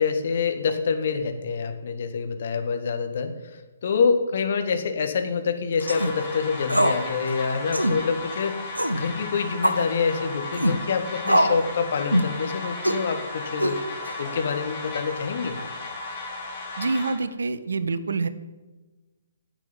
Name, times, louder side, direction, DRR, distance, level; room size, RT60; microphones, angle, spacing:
voice 1, 0.0-13.8 14.2-15.6, left 5 dB, 50° left, 7 dB, 1.6 m, -26 dB
sound 1, 5.8-17.1, left 2 dB, 30° left, 3.7 m, -35 dB
sound 2, 5.8-6.1 6.7-7.0 7.3-7.4 7.7-8.0 8.7-9.0 9.6-9.9 10.5-10.8 11.3-11.6 12.1-12.4 12.8-13.0 13.6-14.1, equal, 85° right, 1.1 m, -22 dB
voice 2, 16.8-18.3, right 3 dB, 60° right, 13 dB, 0.9 m, -26 dB
11.0 x 8.2 x 8.9 m, 1.2 s
figure-of-eight pair, 130°, 0 cm